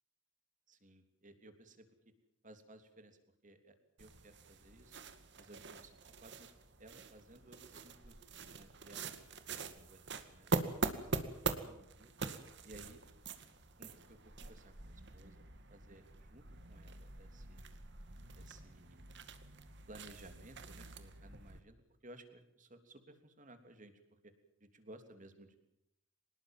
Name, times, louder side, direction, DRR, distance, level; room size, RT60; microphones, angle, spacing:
voice 1, 0.7-2.1 2.4-5.0 5.4-6.5 6.8-8.2 8.5-9.1 9.6-12.1 12.6-13.0 13.8-15.4 15.7-17.6 18.3-19.3 19.9-24.3 24.6-25.6, right 1 dB, 40° right, 8 dB, 3.2 m, -58 dB
sound 1, 4.0-21.6, right 3 dB, 60° right, 2.1 m, -44 dB
24.5 x 20.5 x 7.4 m, 0.81 s
head